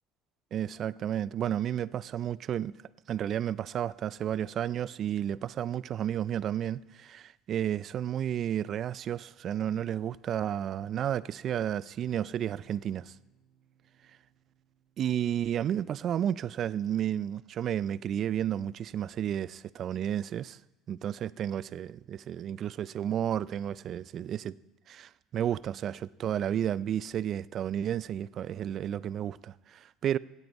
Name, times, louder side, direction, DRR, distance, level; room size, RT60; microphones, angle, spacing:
voice 1, 0.5-2.7 3.1-13.1 15.0-20.6 20.9-24.5 24.9-30.2, right 10 dB, 50° right, 0.3 m, -32 dB
sound 1, 11.9-18.4, right 3 dB, 65° right, 2.2 m, -66 dB
16.0 x 9.3 x 4.6 m
supercardioid pair, 100°, 0 cm